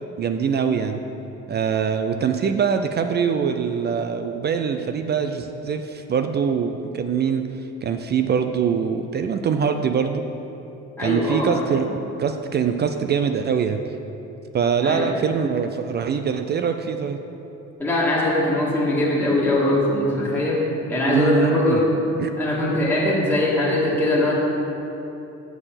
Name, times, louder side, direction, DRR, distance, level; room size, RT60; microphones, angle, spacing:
voice 1, 0.2-1.0 1.5-7.5 7.8-10.2 11.0-13.8 14.5-17.2 21.1-21.8 22.2-22.3, right 6 dB, 35° right, 7 dB, 0.4 m, -23 dB
voice 2, 11.0-11.7 14.8-15.1 17.8-21.9 22.4-24.3, left 1 dB, 5° left, -8 dB, 1.7 m, -21 dB
7.0 x 6.5 x 5.8 m, 3.0 s
cardioid pair, 115°, 29 cm